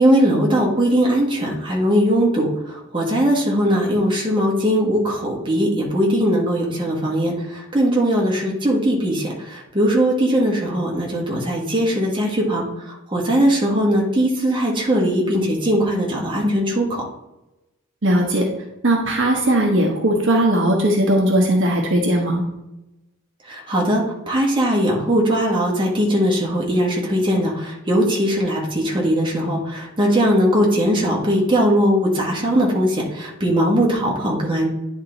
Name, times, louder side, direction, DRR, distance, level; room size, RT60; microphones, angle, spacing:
voice 1, 0.0-12.7 13.1-17.0 23.5-34.7, equal, 20° right, -2 dB, 1.4 m, -19 dB
voice 2, 18.0-18.4 18.8-22.4, right 1 dB, 55° right, 1 dB, 1.1 m, -18 dB
9.8 x 3.7 x 3.9 m, 0.93 s
head